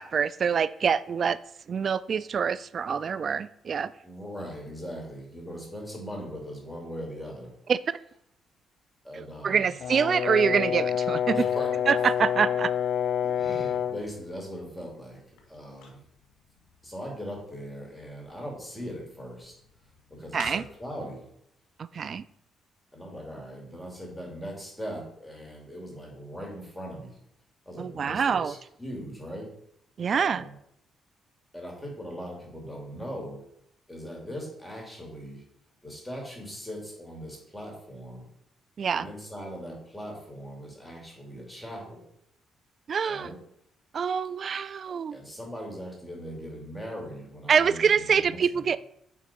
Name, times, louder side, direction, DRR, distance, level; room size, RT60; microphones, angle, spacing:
voice 1, 0.0-1.4 1.7-3.9 7.7-7.8 9.4-11.4 11.9-12.7 20.3-20.6 21.9-22.2 27.8-28.5 30.0-30.4 38.8-39.1 42.9-43.3 43.9-45.2 47.5-48.8, right 6 dB, 50° right, 17 dB, 0.3 m, -25 dB
voice 2, 4.0-7.5 9.0-9.7 11.3-11.8 13.2-16.0 16.8-19.6 20.1-21.3 22.9-27.2 27.6-29.5 30.1-30.5 31.5-33.4 33.9-35.4 35.8-38.3 38.9-42.0 43.0-43.4 44.9-48.7, equal, 5° left, -1 dB, 2.7 m, -40 dB
Brass instrument, 9.8-14.0, left 9 dB, 65° left, 0.4 m, -27 dB
sound 1, 14.2-21.1, left 4 dB, 90° left, 1.4 m, -51 dB
9.0 x 3.6 x 4.4 m, 0.73 s
cardioid pair, 90°, 0 cm